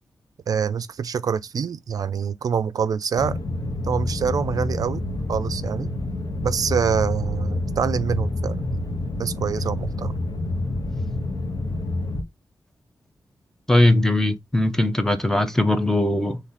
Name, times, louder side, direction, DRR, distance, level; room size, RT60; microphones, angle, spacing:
voice 1, 0.5-3.4 3.9-5.0 5.3-5.9 6.4-8.8 9.2-10.1, right 7 dB, 65° right, 0.4 m, -25 dB
sound 1, 3.2-12.2, left 2 dB, 80° left, 1.2 m, -28 dB
voice 2, 13.7-16.4, left 1 dB, 5° left, 0.6 m, -20 dB
4.1 x 3.2 x 3.9 m
wide cardioid pair, 145°, 7 cm